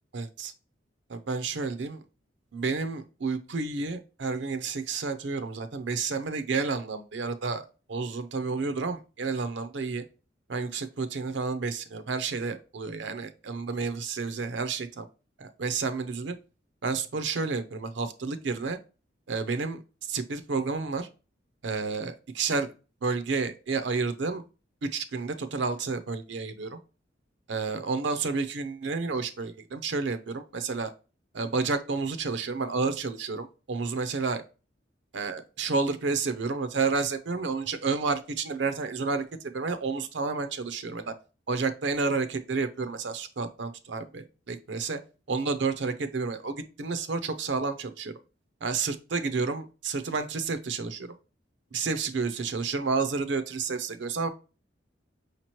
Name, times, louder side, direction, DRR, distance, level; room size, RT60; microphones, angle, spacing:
voice 1, 0.1-0.5 1.1-2.0 2.5-10.0 10.5-15.1 15.4-16.4 16.8-18.8 19.3-19.8 20.1-21.1 21.6-22.7 23.0-24.4 24.8-26.8 27.5-30.9 31.3-34.4 35.1-41.1 41.5-45.0 45.3-48.1 48.6-51.1 51.7-54.3, right 4 dB, 70° right, 10 dB, 0.5 m, -30 dB
5.0 x 2.9 x 2.9 m, 0.32 s
head